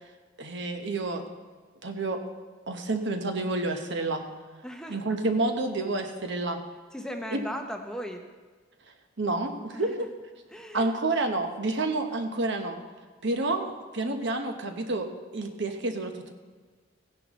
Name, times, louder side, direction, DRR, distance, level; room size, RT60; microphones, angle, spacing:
voice 1, 0.4-1.2 1.8-2.2 2.7-4.2 4.9-6.6 7.3-7.4 9.2-9.9 10.7-12.8 13.2-16.3, right 2 dB, 60° right, 5 dB, 1.1 m, -29 dB
voice 2, 4.6-5.0 6.9-8.2 9.7-10.1 10.5-10.9, equal, 5° left, 3 dB, 0.7 m, -37 dB
16.0 x 10.5 x 3.1 m, 1.4 s
head